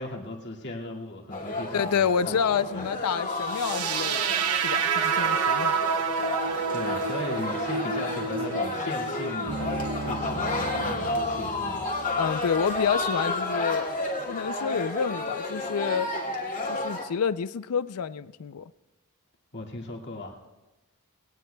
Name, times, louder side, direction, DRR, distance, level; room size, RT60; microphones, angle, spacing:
voice 1, 0.0-2.4 2.7-2.9 6.7-11.9 19.5-20.4, left 1 dB, 50° left, 2.1 m, -37 dB
sound 1, 1.3-17.0, left 2 dB, 35° left, 2.1 m, -31 dB
voice 2, 1.7-5.7 12.2-13.9 14.3-16.1 16.7-18.7, left 7 dB, 80° left, 0.4 m, -28 dB
sound 2, 3.5-11.5, right 6 dB, 90° right, 0.9 m, -29 dB
Bass guitar, 9.5-13.2, equal, 60° right, 1.8 m, -38 dB
21.5 x 18.5 x 2.3 m
head